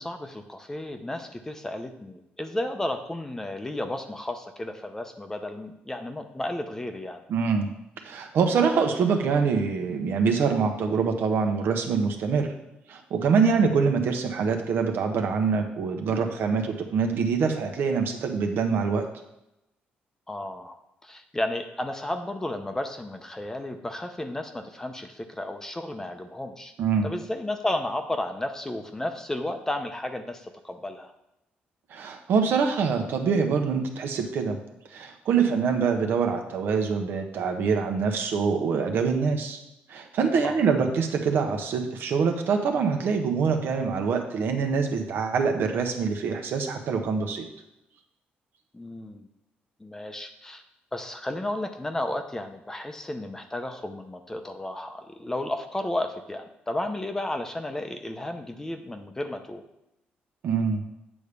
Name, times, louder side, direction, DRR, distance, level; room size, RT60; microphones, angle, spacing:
voice 1, 0.0-7.2 13.4-13.6 20.3-20.8 21.0-26.7 27.0-31.1 40.4-40.6 48.7-49.3 49.8-50.6 50.9-59.6, left 1 dB, 15° left, 7 dB, 0.7 m, -33 dB
voice 2, 7.3-7.7 8.0-12.5 12.9-19.0 26.8-27.1 31.9-34.6 34.9-39.6 39.9-47.4 60.4-60.8, right 5 dB, 70° right, 4 dB, 1.1 m, -25 dB
8.5 x 3.6 x 6.7 m, 0.88 s
cardioid pair, 110°, 4 cm